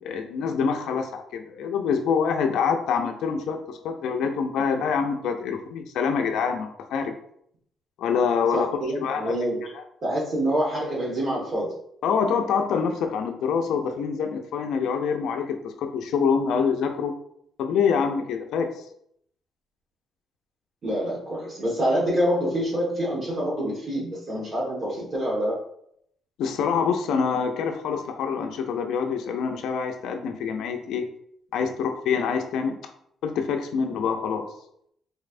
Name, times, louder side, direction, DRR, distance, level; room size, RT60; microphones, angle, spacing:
voice 1, 0.0-7.1 8.0-8.7 9.0-9.3 9.7-9.8 12.0-17.1 17.6-18.8 26.4-31.0 31.5-32.8 33.2-34.5, left 6 dB, 80° left, 4 dB, 0.4 m, -26 dB
voice 2, 8.5-9.6 10.0-11.7 20.8-25.6, equal, 45° right, -5 dB, 1.3 m, -26 dB
4.1 x 3.2 x 2.5 m, 0.71 s
cardioid pair, 90°, 0 cm